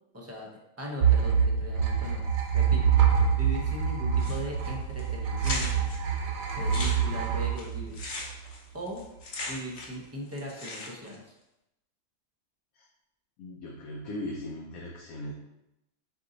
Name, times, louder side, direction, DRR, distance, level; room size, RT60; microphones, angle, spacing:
voice 1, 0.1-0.5 0.8-2.2 2.5-2.9 3.4-5.9 6.6-8.1 8.7-9.0 9.4-11.3, equal, 20° right, -2 dB, 0.4 m, -39 dB
sound 1, 1.0-8.5, right 7 dB, 90° right, 1.1 m, -26 dB
sound 2, 4.2-4.7 5.0-5.1 5.4-6.0 6.5-10.0 10.3-11.1, left 2 dB, 55° left, 0.9 m, -38 dB
voice 2, 13.4-15.3, left 1 dB, 85° left, -1 dB, 1.1 m, -38 dB
4.3 x 2.6 x 3.8 m, 0.89 s
omnidirectional pair, 1.4 m